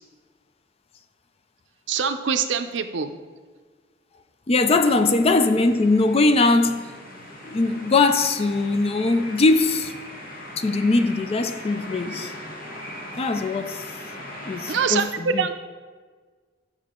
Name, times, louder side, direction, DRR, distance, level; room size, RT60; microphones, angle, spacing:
voice 1, 1.9-3.1 14.7-15.5, right 6 dB, 70° right, 0.5 m, -24 dB
voice 2, 4.5-6.9 7.5-9.9 10.6-12.3 13.2-13.8 14.5-15.5, left 3 dB, 35° left, 0.4 m, -21 dB
sound 1, 4.6-15.0, left 1 dB, 50° left, 1.1 m, -39 dB
8.6 x 6.2 x 3.7 m
head